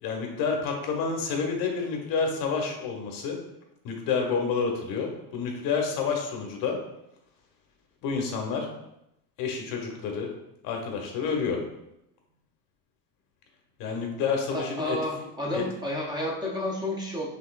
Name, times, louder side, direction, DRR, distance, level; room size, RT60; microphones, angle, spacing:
voice 1, 0.0-3.4 3.8-6.8 8.0-8.7 9.4-10.3 10.6-11.6 13.8-15.0 15.5-15.6, left 5 dB, 45° left, 2 dB, 1.0 m, -29 dB
voice 2, 14.5-17.3, left 1 dB, 10° right, -3 dB, 0.5 m, -31 dB
5.6 x 3.3 x 2.3 m, 0.84 s
supercardioid pair, 135°, 47 cm